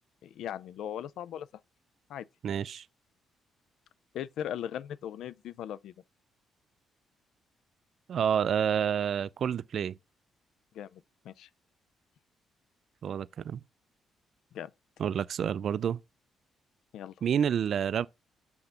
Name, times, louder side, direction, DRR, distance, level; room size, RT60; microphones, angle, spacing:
voice 1, 0.2-1.5 2.1-2.3 4.1-5.9 10.7-11.5 14.5-14.7 16.9-17.1, left 10 dB, 75° left, 0.3 m, -38 dB
voice 2, 2.4-2.9 8.1-10.0 13.0-13.6 15.0-16.0 17.2-18.1, right 8 dB, 60° right, 0.3 m, -29 dB
5.9 x 3.8 x 5.6 m
cardioid pair, 90°, 0 cm